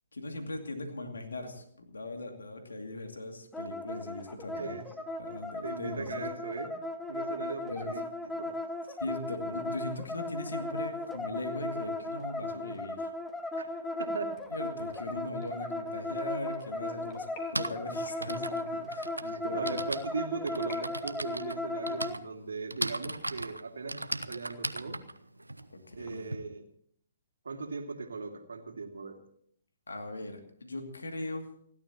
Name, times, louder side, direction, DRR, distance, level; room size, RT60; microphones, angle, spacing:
voice 1, 0.1-4.8 5.2-6.3 7.6-7.9 9.0-13.1 14.5-17.3 17.5-19.8 25.9-26.2 29.9-31.4, left 2 dB, 75° left, 5 dB, 2.5 m, -39 dB
sound 1, 3.5-22.2, left 2 dB, 5° left, 1.1 m, -36 dB
voice 2, 4.5-4.8 5.6-6.7 7.1-8.5 13.6-13.7 14.0-14.3 19.2-25.0 26.0-26.6 27.4-29.2, right 4 dB, 70° right, 4 dB, 2.5 m, -38 dB
sound 2, 14.3-20.8 21.1-23.6 24.0-24.1 24.5-24.6 25.0-25.1 25.4-26.1, left 3 dB, 35° left, 3.7 m, -54 dB
Typing, 16.2-16.3 17.2-26.4, right 2 dB, 85° right, 0.8 m, -38 dB
29.5 x 12.0 x 3.0 m, 0.65 s
figure-of-eight pair, 125°, 0 cm